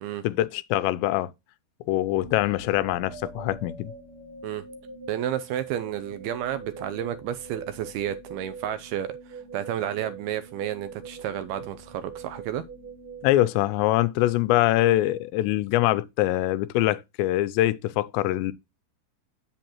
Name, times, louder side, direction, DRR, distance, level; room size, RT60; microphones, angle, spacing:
voice 1, 0.2-1.3 1.9-3.9 13.2-18.5, left 15 dB, 85° left, 2.8 m, -23 dB
sound 1, 2.2-14.3, right 4 dB, 45° right, 1.9 m, -43 dB
voice 2, 5.1-12.6, right 11 dB, 80° right, 2.3 m, -31 dB
8.9 x 7.7 x 3.0 m
omnidirectional pair, 5.1 m